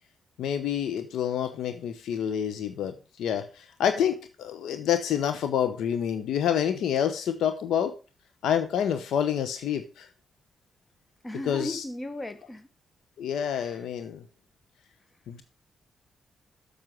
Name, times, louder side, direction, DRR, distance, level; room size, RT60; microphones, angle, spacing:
voice 1, 0.4-7.9 8.4-10.1 11.5-11.8 13.2-14.2 15.3-15.4, left 9 dB, 75° left, 9 dB, 0.9 m, -28 dB
voice 2, 11.2-12.7 13.5-13.8, left 1 dB, 25° left, 10 dB, 1.7 m, -36 dB
7.6 x 6.6 x 6.1 m, 0.33 s
supercardioid pair, 45°, 0 cm